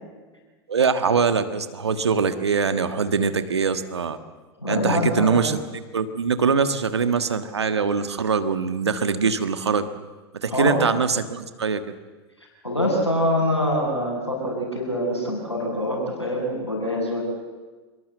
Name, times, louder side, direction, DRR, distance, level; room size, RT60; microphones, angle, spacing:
voice 1, 0.7-4.2 4.7-9.9 10.4-11.8, right 5 dB, 75° right, 10 dB, 1.6 m, -23 dB
voice 2, 4.6-5.4 10.5-10.8 12.6-17.2, left 1 dB, 85° left, -5 dB, 6.1 m, -24 dB
25.5 x 23.0 x 7.8 m, 1.3 s
figure-of-eight pair, 90°, 14 cm